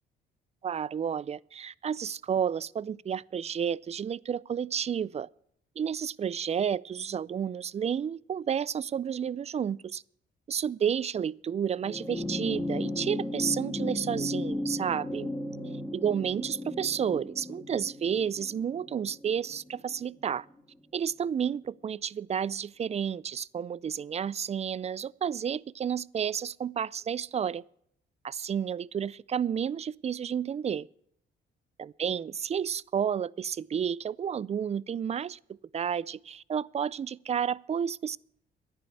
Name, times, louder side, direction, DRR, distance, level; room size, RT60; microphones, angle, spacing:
voice 1, 0.6-5.3 5.8-10.0 10.5-15.3 15.9-20.5 20.9-27.6 28.2-30.9 31.8-35.4 35.7-38.2, right 8 dB, 35° right, 0.4 m, -31 dB
sound 1, 11.8-20.4 21.7-21.8, left 1 dB, 10° left, 1.9 m, -35 dB
11.0 x 9.3 x 8.2 m
cardioid pair, 90°, 20 cm